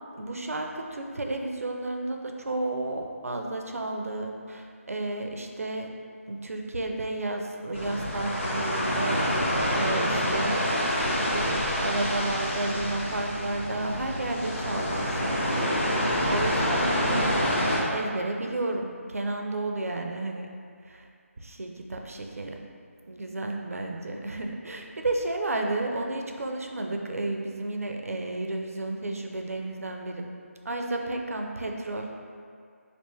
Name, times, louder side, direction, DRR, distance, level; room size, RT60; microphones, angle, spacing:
voice 1, 0.2-5.9 6.3-9.2 9.7-10.7 11.3-17.3 17.9-20.5 20.9-21.1 21.4-22.7 23.1-30.3 30.6-32.1, right 2 dB, 75° right, 3 dB, 0.4 m, -32 dB
sound 1, 7.7-17.8, equal, 55° left, 0.8 m, -27 dB
3.3 x 2.5 x 3.1 m, 2.2 s
figure-of-eight pair, 160°, 8 cm